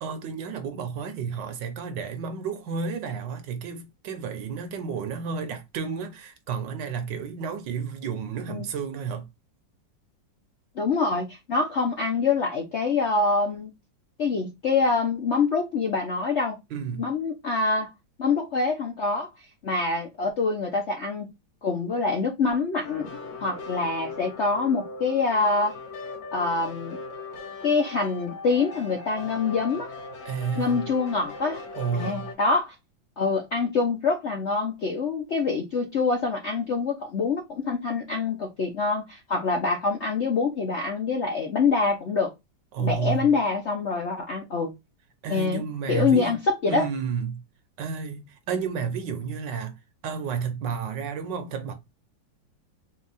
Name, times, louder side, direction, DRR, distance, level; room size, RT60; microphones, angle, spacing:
voice 1, 0.0-9.3 16.7-17.1 30.2-30.8 31.8-32.3 42.7-43.3 45.2-46.3 46.6-47.4 47.8-49.8 50.0-51.7, right 6 dB, 70° right, 1.4 m, -31 dB
voice 2, 10.8-13.7 14.2-16.6 17.0-17.9 18.2-19.3 19.6-21.3 21.6-23.1 23.4-25.7 26.3-27.0 27.6-29.9 30.6-31.6 31.9-32.7 33.2-42.3 42.8-44.7 45.3-46.9, left 4 dB, 60° left, 0.7 m, -25 dB
sound 1, 22.8-32.3, left 3 dB, 80° left, 2.2 m, -39 dB
4.4 x 2.3 x 3.9 m
omnidirectional pair, 2.1 m